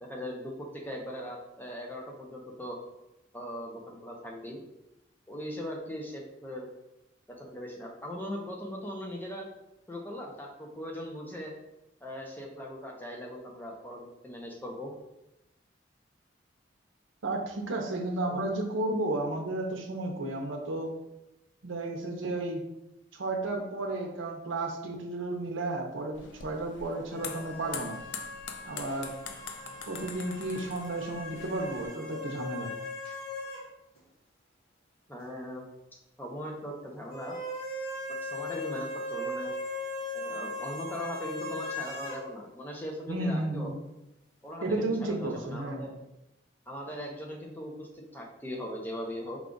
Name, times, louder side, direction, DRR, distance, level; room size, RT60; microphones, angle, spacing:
voice 1, 0.0-2.8 3.3-4.6 5.3-6.7 7.4-9.5 9.9-11.5 12.0-14.9 18.3-18.4 35.1-35.6 36.2-37.4 38.2-39.5 40.1-43.7 44.4-45.9 46.7-49.4, equal, 10° left, -1 dB, 0.6 m, -39 dB
voice 2, 17.2-20.9 21.6-22.6 23.1-28.0 28.6-29.1 29.9-32.7 43.1-43.8 44.6-45.9, right 2 dB, 90° right, 2 dB, 0.7 m, -33 dB
sound 1, 26.1-31.9, left 6 dB, 70° left, 0.4 m, -44 dB
sound 2, 27.1-33.7 34.0-34.1 37.1-42.2, left 1 dB, 30° left, 1.4 m, -38 dB
4.8 x 2.3 x 3.8 m, 0.90 s
head